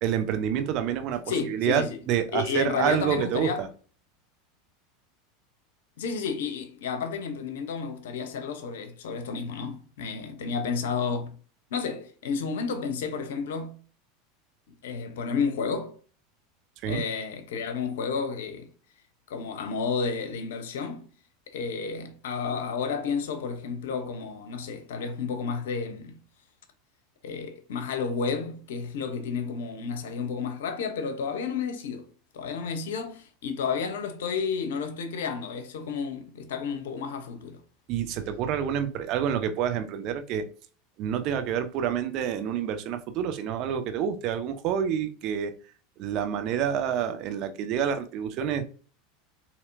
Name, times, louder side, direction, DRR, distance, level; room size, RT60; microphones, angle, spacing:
voice 1, 0.0-3.7 16.8-17.0 37.9-40.4 41.0-45.5 46.0-48.6, right 8 dB, 50° right, 0.6 m, -28 dB
voice 2, 1.3-2.0 2.3-3.6 6.0-11.3 11.7-13.8 14.8-16.0 16.8-18.6 19.3-21.0 21.5-26.2 27.2-32.1 32.3-37.6, left 5 dB, 70° left, 0.7 m, -31 dB
4.2 x 2.9 x 2.5 m
hypercardioid pair, 85°, 0 cm